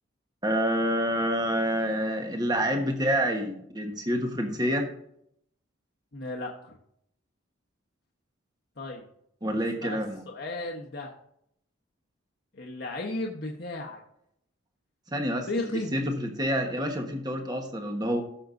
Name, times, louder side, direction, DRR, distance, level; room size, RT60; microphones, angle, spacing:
voice 1, 0.4-4.9 9.4-10.2 15.1-15.5 15.9-18.2, equal, 20° right, 4 dB, 1.3 m, -27 dB
voice 2, 6.1-6.7 8.8-9.1 9.5-10.0 10.2-11.1 12.5-14.0 15.5-15.9, left 2 dB, 55° left, -1 dB, 1.3 m, -34 dB
18.0 x 6.6 x 2.6 m, 0.71 s
head